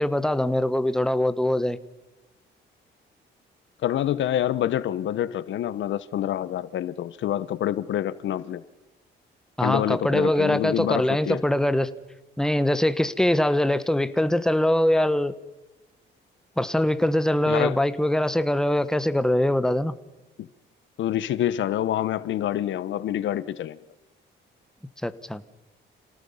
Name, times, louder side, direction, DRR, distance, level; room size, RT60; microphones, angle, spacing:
voice 1, 0.0-1.8 9.6-11.9 12.4-15.3 16.6-19.9 25.0-25.4, left 1 dB, 5° left, 1.2 m, -23 dB
voice 2, 3.8-8.6 9.6-11.4 17.5-17.8 20.4-20.5 21.0-23.8, left 11 dB, 70° left, 0.9 m, -27 dB
27.0 x 18.5 x 5.6 m
cardioid pair, 90°, 20 cm